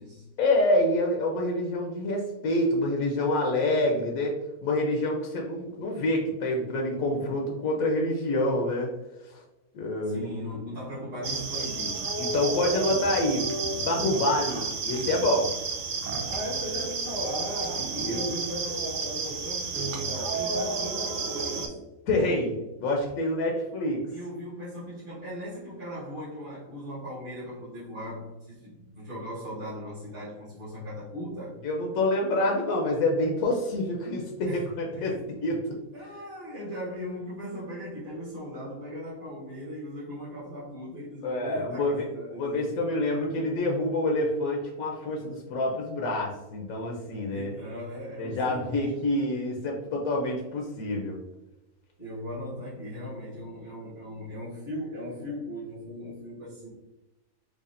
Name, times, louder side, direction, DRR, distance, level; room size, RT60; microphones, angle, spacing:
voice 1, 0.4-8.9 9.2-9.4 9.7-10.3 12.2-13.5 13.7-15.5 18.0-18.2 22.1-24.0 31.6-35.2 35.4-35.7 41.2-47.5 48.2-51.2, left 1 dB, 80° left, 1 dB, 1.1 m, -27 dB
voice 2, 10.0-12.2 16.3-21.9 24.1-31.6 34.4-35.2 35.9-42.7 47.3-49.2 52.0-56.7, equal, 45° right, -11 dB, 1.5 m, -38 dB
sound 1, 11.2-21.7, right 3 dB, 85° right, 0.4 m, -31 dB
4.9 x 2.4 x 2.5 m, 0.97 s
omnidirectional pair, 1.5 m